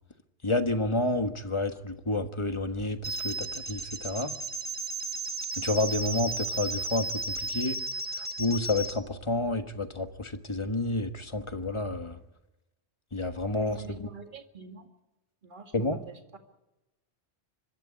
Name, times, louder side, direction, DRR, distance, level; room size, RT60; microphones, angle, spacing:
voice 1, 0.4-4.3 5.6-7.8 8.4-12.2 13.1-14.1 15.7-16.0, left 2 dB, 25° left, 7 dB, 1.4 m, -30 dB
sound 1, 3.0-9.0, right 2 dB, 10° right, 1.2 m, -34 dB
voice 2, 13.5-14.9 15.4-16.4, right 3 dB, 45° right, 4 dB, 2.2 m, -46 dB
25.0 x 12.5 x 9.9 m, 1.0 s
omnidirectional pair, 1.1 m